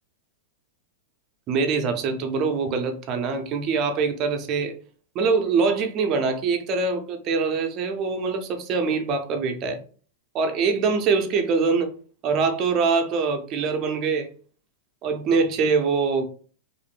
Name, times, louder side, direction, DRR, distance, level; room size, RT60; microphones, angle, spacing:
voice 1, 1.5-4.7 5.1-9.8 10.3-11.9 12.2-14.3 15.0-16.2, right 4 dB, 35° right, 0.5 m, -23 dB
2.5 x 2.0 x 3.1 m
hypercardioid pair, 135°, 0 cm